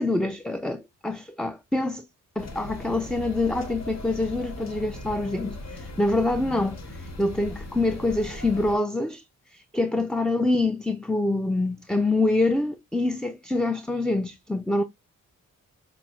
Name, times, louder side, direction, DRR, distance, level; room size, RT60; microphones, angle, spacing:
voice 1, 0.0-2.0 2.4-9.2 9.5-14.8, left 2 dB, ahead, 0.4 m, -26 dB
sound 1, 2.4-8.7, left 1 dB, 50° left, 1.2 m, -38 dB
5.9 x 2.0 x 2.3 m
cardioid pair, 70°, 33 cm